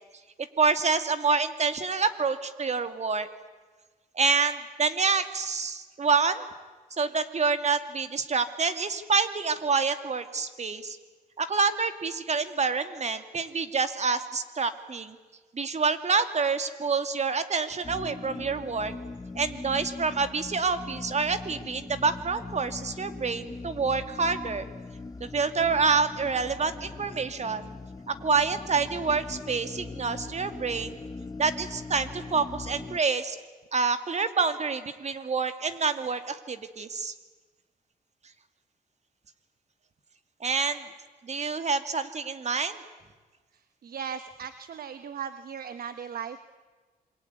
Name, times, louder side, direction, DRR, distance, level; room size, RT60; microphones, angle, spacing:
voice 1, 0.6-3.3 4.1-6.5 7.0-11.0 11.4-15.2 15.5-18.9 19.3-24.7 25.2-27.7 28.1-31.0 31.4-33.4 33.7-37.1 40.4-40.8 41.2-42.8, right 4 dB, 45° right, 9 dB, 2.4 m, -27 dB
sound 1, 17.8-33.0, left 3 dB, 25° left, 1.0 m, -41 dB
voice 2, 43.8-46.4, right 7 dB, 70° right, 11 dB, 1.3 m, -37 dB
27.0 x 23.0 x 9.5 m, 1.4 s
cardioid pair, 80°, 16 cm